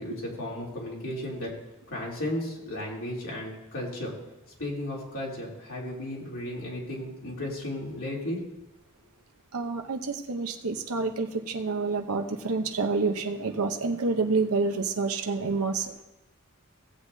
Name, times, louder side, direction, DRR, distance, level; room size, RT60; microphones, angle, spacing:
voice 1, 0.0-1.5 1.9-4.1 4.6-8.4, left 1 dB, 65° left, -4 dB, 3.2 m, -34 dB
voice 2, 9.5-15.9, right 4 dB, 80° right, 5 dB, 0.8 m, -28 dB
16.5 x 8.1 x 2.7 m, 0.94 s
head